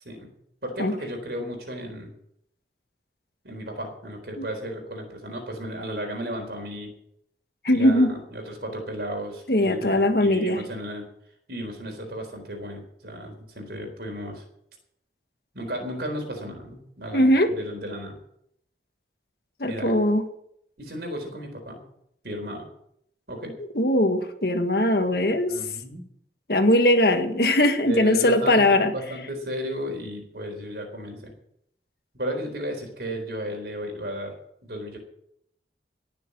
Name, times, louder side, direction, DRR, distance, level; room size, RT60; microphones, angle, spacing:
voice 1, 0.6-2.1 3.4-6.9 7.7-11.1 11.5-14.4 15.5-18.2 19.6-20.0 20.8-21.8 22.2-22.7 23.3-23.5 25.5-26.1 27.8-31.3 32.1-34.4 34.6-35.0, equal, 65° right, 3 dB, 4.1 m, -34 dB
voice 2, 7.6-8.2 9.5-10.6 17.1-17.5 19.6-20.2 23.8-25.5 26.5-28.9, left 1 dB, 60° left, 6 dB, 1.7 m, -20 dB
18.5 x 7.0 x 7.3 m, 0.74 s
head